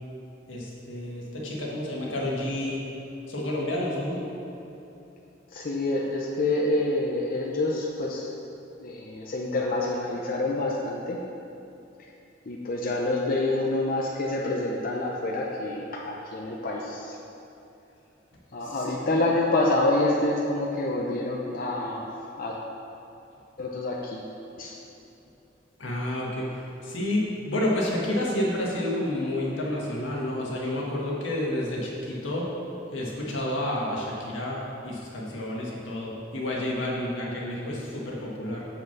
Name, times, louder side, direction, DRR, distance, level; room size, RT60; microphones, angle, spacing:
voice 1, 0.5-2.8 3.3-4.2 18.6-19.2 25.8-32.5 32.9-38.7, left 1 dB, 85° left, -3 dB, 1.8 m, -30 dB
voice 2, 5.5-8.3 8.8-11.2 12.5-17.2 18.5-22.0 22.3-22.6 23.6-24.3 24.6-24.8, left 2 dB, 50° left, -2 dB, 0.7 m, -27 dB
7.6 x 5.9 x 5.9 m, 2.9 s
head